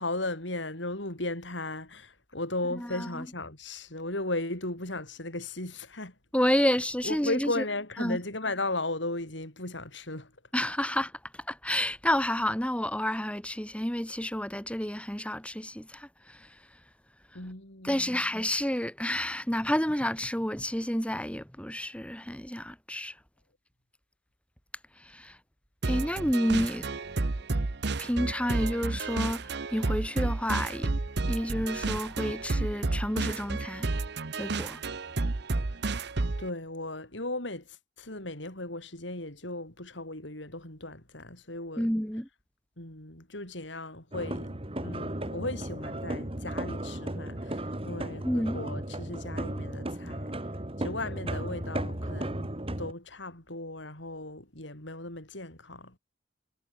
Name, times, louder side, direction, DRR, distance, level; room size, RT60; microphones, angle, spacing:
voice 1, 0.0-6.2 7.0-10.3 17.3-18.3 36.4-41.9 42.8-50.3 50.8-56.0, left 2 dB, 75° left, 6.9 m, -36 dB
voice 2, 2.7-3.2 6.3-7.6 8.0-8.2 10.5-16.6 17.8-23.2 25.0-25.4 25.8-26.9 28.0-30.9 31.3-33.9 34.3-34.8 41.8-42.3 48.2-48.6, equal, 5° left, 4.8 m, -30 dB
sound 1, 25.8-36.5, right 3 dB, 65° right, 0.9 m, -31 dB
sound 2, 44.1-52.9, right 1 dB, 30° right, 2.9 m, -35 dB
head